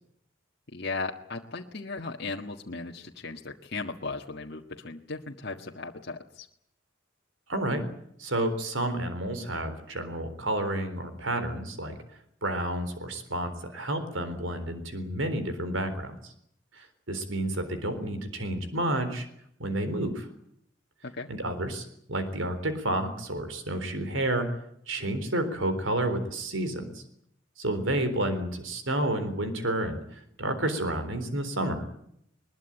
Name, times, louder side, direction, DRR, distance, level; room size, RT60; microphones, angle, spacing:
voice 1, 0.7-6.5 21.0-21.3, left 3 dB, 55° left, 0 dB, 1.6 m, -37 dB
voice 2, 7.5-7.9 8.2-12.0 12.4-16.3 16.8-19.3 19.6-20.3 21.3-24.5 24.9-27.0 27.6-30.0 30.4-31.8, right 1 dB, 80° right, 9 dB, 3.9 m, -30 dB
21.5 x 21.5 x 9.0 m, 0.73 s
head